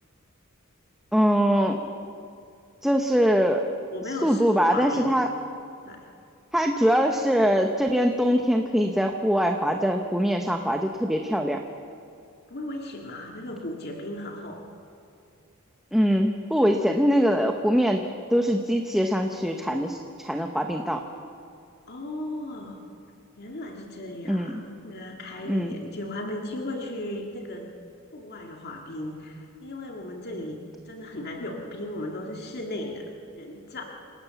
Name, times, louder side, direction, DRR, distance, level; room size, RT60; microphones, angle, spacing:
voice 1, 1.1-1.8 2.8-3.6 4.2-5.3 6.5-11.6 15.9-18.0 18.3-21.0 24.3-24.5 25.5-25.7, equal, ahead, 3 dB, 0.9 m, -23 dB
voice 2, 3.9-5.2 5.8-6.1 12.5-14.7 21.9-22.8 23.4-27.7 28.1-33.8, left 1 dB, 50° left, 1 dB, 2.2 m, -36 dB
27.5 x 17.5 x 7.0 m, 2.5 s
head